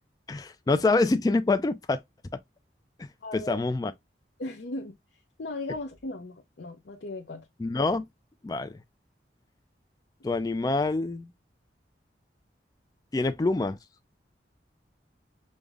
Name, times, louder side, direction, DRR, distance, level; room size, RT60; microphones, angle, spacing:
voice 1, 0.3-2.0 3.0-3.1 3.5-3.9 7.6-8.0 8.4-8.8 10.2-11.3 13.1-13.8, left 3 dB, 20° left, 0.3 m, -26 dB
voice 2, 3.2-3.6 4.4-5.0 5.4-7.5, left 2 dB, 70° left, 0.6 m, -37 dB
5.2 x 2.0 x 3.4 m
head